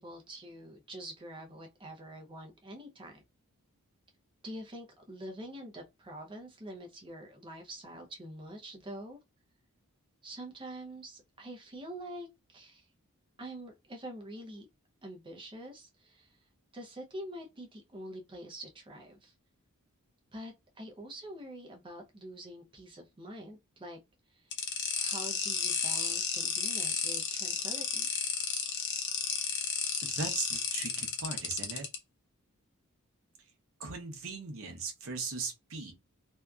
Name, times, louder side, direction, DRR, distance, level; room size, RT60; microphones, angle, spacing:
voice 1, 0.0-3.2 4.4-9.2 10.2-12.9 13.4-14.7 15.0-16.4 16.7-19.3 20.3-24.0 24.3-24.5 24.9-28.1, right 1 dB, 20° right, 0.5 m, -45 dB
sound 1, 24.5-32.0, left 6 dB, 50° left, 0.6 m, -32 dB
voice 2, 30.0-31.9 33.8-35.9, right 4 dB, 60° right, 0.7 m, -38 dB
2.7 x 2.3 x 2.3 m
head